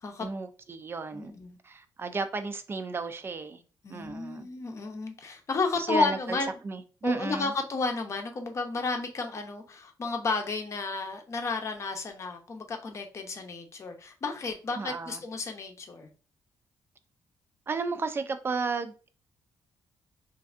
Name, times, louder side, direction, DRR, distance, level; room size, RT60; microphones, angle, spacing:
voice 1, 0.2-1.3 1.6-3.6 3.9-4.5 5.8-6.4 6.6-7.5 14.7-15.2 17.7-19.1, right 4 dB, 30° right, 0.4 m, -33 dB
voice 2, 1.1-1.6 3.8-6.5 7.0-16.1, left 3 dB, 40° left, 0.7 m, -32 dB
3.2 x 2.6 x 2.4 m
cardioid pair, 100°, 7 cm